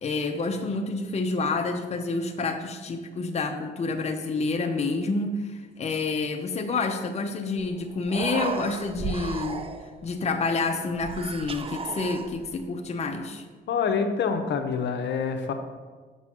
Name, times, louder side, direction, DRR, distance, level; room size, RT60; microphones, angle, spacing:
voice 1, 0.0-9.7 10.0-13.4, left 3 dB, 35° left, 4 dB, 0.7 m, -28 dB
Human voice, 7.7-7.8 8.0-10.1 11.0-12.6, right 4 dB, 30° right, 0.5 m, -34 dB
voice 2, 13.7-15.5, left 6 dB, 65° left, 6 dB, 0.8 m, -26 dB
7.0 x 4.1 x 6.1 m, 1.4 s
cardioid pair, 90°, 20 cm